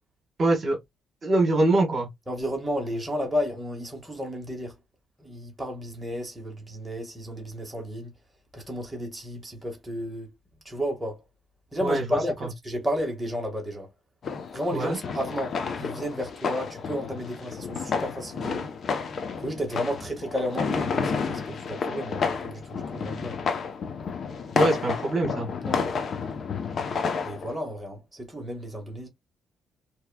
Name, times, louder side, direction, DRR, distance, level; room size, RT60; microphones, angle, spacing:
voice 1, 0.4-0.8 1.2-2.1 11.8-12.2 14.7-15.0 24.5-25.5, right 2 dB, 45° right, 1.5 m, -23 dB
voice 2, 2.3-4.7 5.2-8.1 8.5-10.3 10.7-11.2 11.7-13.9 14.5-18.7 19.4-23.4 25.6-25.9 27.2-29.1, equal, 10° right, 1.7 m, -32 dB
sound 1, 14.2-27.6, left 5 dB, 50° left, 0.8 m, -31 dB
4.5 x 3.0 x 2.3 m
cardioid pair, 90°, 0 cm